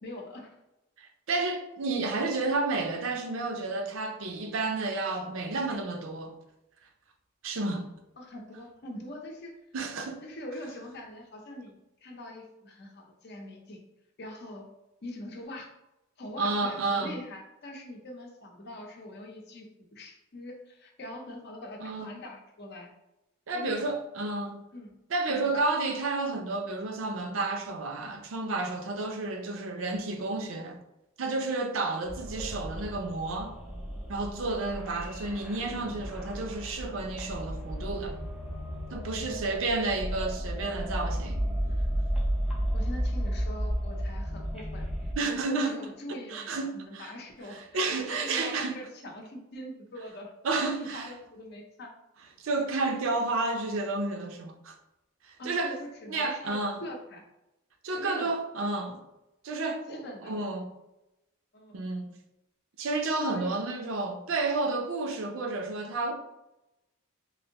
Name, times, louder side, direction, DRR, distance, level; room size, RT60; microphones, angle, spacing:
voice 1, 0.0-0.5 8.2-9.5 10.2-13.8 14.2-14.7 15.0-15.7 16.2-22.9 23.5-23.9 24.7-25.0 25.3-25.6 39.2-39.6 42.7-44.9 45.3-50.3 50.8-51.9 55.4-57.2 57.9-58.3 59.6-60.4 61.5-61.8 63.3-63.6, left 1 dB, 50° left, 0.6 m, -43 dB
voice 2, 1.0-6.3 7.4-7.9 9.7-10.2 16.4-17.2 21.8-22.1 23.5-24.6 25.1-30.8 31.2-33.6 34.1-38.2 38.9-41.6 45.2-45.8 46.1-47.1 47.5-48.8 50.4-51.1 52.4-54.7 55.2-55.7 56.1-56.8 57.8-59.0 59.4-60.7 61.7-62.1 62.8-66.1, right 3 dB, 75° right, 0.5 m, -31 dB
sound 1, 32.1-45.1, equal, 5° right, 0.5 m, -33 dB
3.2 x 2.6 x 2.8 m
head